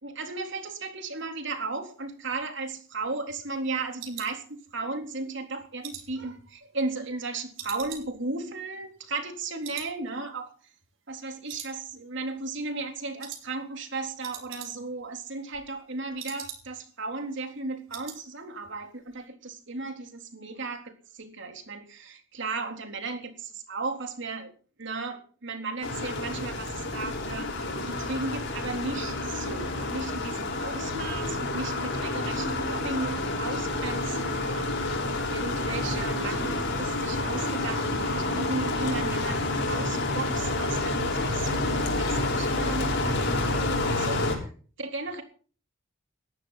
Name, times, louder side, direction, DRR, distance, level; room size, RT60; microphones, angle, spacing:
voice 1, 0.0-10.5 11.1-24.5 24.8-35.0 35.3-44.5 44.8-45.2, right 3 dB, 65° right, 5 dB, 3.6 m, -35 dB
sound 1, 2.3-5.0 5.4-7.2 7.6-9.4 9.6-10.0 10.2-10.3 10.8-11.2 11.5-12.3 12.5-12.8 13.2-13.5 13.8-13.9 14.1-15.0 15.3-16.9 17.2-17.3 17.6-18.2 18.5-18.8 19.1-19.2, right 9 dB, 80° right, 6.0 m, -44 dB
sound 2, 25.8-44.4, left 2 dB, 60° left, 6.2 m, -29 dB
19.0 x 14.5 x 4.1 m, 0.41 s
head